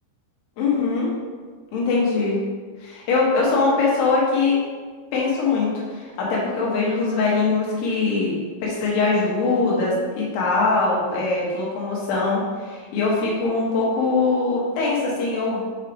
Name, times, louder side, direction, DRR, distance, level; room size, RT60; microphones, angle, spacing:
voice 1, 0.6-1.1 1.7-2.4 2.8-4.6 5.1-8.4 8.6-15.6, left 3 dB, 70° left, -4 dB, 3.3 m, -22 dB
7.4 x 4.6 x 3.4 m, 1.5 s
omnidirectional pair, 5.0 m